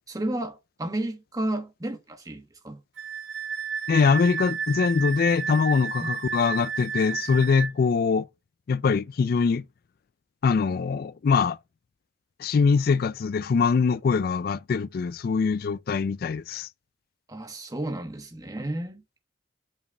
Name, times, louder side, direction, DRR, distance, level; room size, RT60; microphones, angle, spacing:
voice 1, 0.1-2.8 6.0-6.1 17.3-19.0, right 1 dB, 20° right, 1.2 m, -32 dB
Wind instrument woodwind instrument, 3.0-7.7, right 7 dB, 75° right, 1.0 m, -32 dB
voice 2, 3.9-8.3 8.7-9.6 10.4-11.6 12.4-16.7, left 5 dB, 50° left, 0.3 m, -23 dB
5.5 x 4.9 x 5.4 m
head